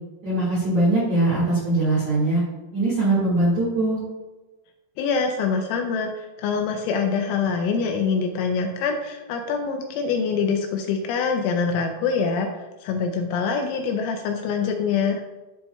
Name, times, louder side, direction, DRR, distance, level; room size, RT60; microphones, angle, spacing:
voice 1, 0.2-2.4 2.7-4.0, right 2 dB, 55° right, -9 dB, 2.0 m, -21 dB
voice 2, 5.0-15.2, left 5 dB, 85° left, 3 dB, 2.8 m, -25 dB
11.5 x 4.1 x 2.2 m, 1.1 s
omnidirectional pair, 5.8 m